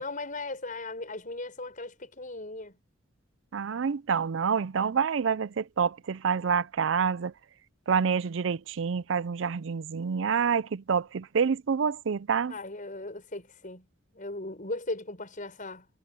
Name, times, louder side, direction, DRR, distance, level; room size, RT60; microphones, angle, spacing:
voice 1, 0.0-2.8 12.5-13.9 14.1-15.9, left 2 dB, 40° left, 6.2 m, -37 dB
voice 2, 3.5-7.3 7.9-12.5, right 6 dB, 65° right, 0.4 m, -27 dB
head